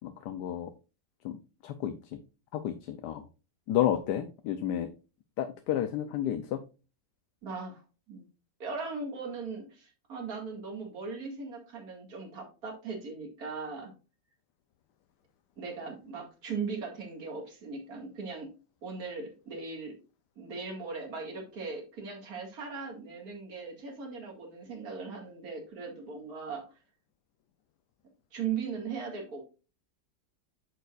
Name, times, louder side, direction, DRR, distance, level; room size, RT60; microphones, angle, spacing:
voice 1, 0.0-0.7 1.2-2.2 2.5-3.2 3.7-4.9 5.4-6.6, left 11 dB, 75° left, 9 dB, 1.2 m, -31 dB
voice 2, 7.4-7.8 8.1-8.2 8.6-13.9 15.6-20.0 20.4-26.7 28.3-29.4, right 5 dB, 55° right, 1 dB, 2.6 m, -39 dB
9.1 x 6.8 x 2.5 m, 0.32 s
omnidirectional pair, 1.9 m